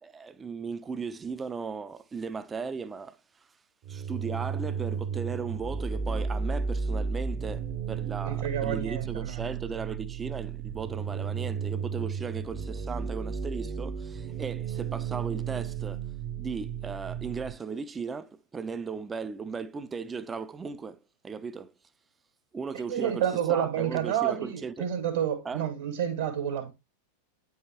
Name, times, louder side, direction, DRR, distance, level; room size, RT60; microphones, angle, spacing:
voice 1, 0.0-3.5 3.9-16.0 16.4-21.7 22.5-24.9 25.4-25.6, right 5 dB, 15° right, 0.4 m, -37 dB
sound 1, 3.8-17.5, right 6 dB, 40° right, 0.8 m, -33 dB
voice 2, 8.2-9.5 22.9-26.7, right 9 dB, 65° right, 1.4 m, -29 dB
8.7 x 4.8 x 2.8 m
figure-of-eight pair, 90°, 0 cm